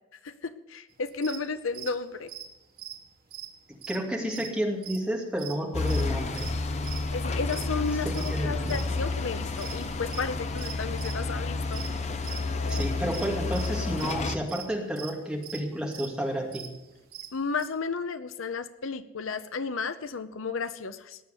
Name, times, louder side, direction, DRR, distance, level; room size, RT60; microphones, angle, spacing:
voice 1, 0.2-2.3 7.1-11.8 17.3-21.2, left 4 dB, 80° left, 12 dB, 0.8 m, -33 dB
sound 1, 1.1-1.4 1.7-1.9 2.2-4.0 4.3-4.5 4.8-5.1 5.4-6.0 6.3-6.5 6.8-7.7 8.1-8.9 9.2-11.3 11.6-11.9 12.2-17.6, right 10 dB, 45° right, 1.8 m, -42 dB
voice 2, 3.9-6.5 7.8-8.8 12.7-16.7, equal, 5° right, -1 dB, 2.4 m, -31 dB
sound 2, 5.7-14.4, left 3 dB, 35° left, 0.8 m, -30 dB
19.0 x 6.9 x 8.1 m, 1.0 s
head